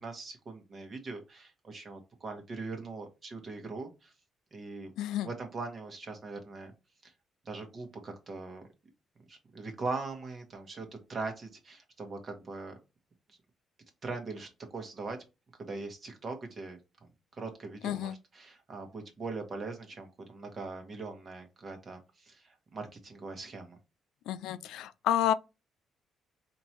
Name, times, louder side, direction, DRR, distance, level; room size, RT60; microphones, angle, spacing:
voice 1, 0.0-4.1 4.5-4.9 5.2-6.7 7.0-7.1 7.4-8.6 9.3-12.7 14.0-15.2 15.6-16.8 17.4-23.8, right 3 dB, 45° right, 1.4 m, -41 dB
voice 2, 5.0-5.3 17.8-18.2 24.3-25.3, left 11 dB, 90° left, 0.3 m, -30 dB
4.4 x 2.9 x 3.0 m
cardioid pair, 90°, 0 cm